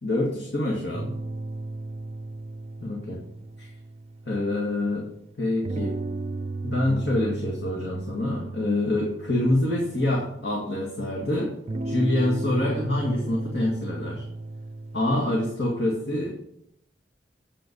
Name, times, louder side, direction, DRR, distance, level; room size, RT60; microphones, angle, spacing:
voice 1, 0.0-1.1 2.8-3.2 3.6-3.7 4.3-5.1 5.4-5.9 6.6-11.5 11.8-14.3 14.9-16.4, left 1 dB, 85° left, -2 dB, 2.1 m, -26 dB
sound 1, 0.9-4.9 5.6-10.7 11.7-15.9, right 2 dB, 35° right, 0.5 m, -35 dB
8.4 x 8.4 x 5.4 m, 0.74 s
head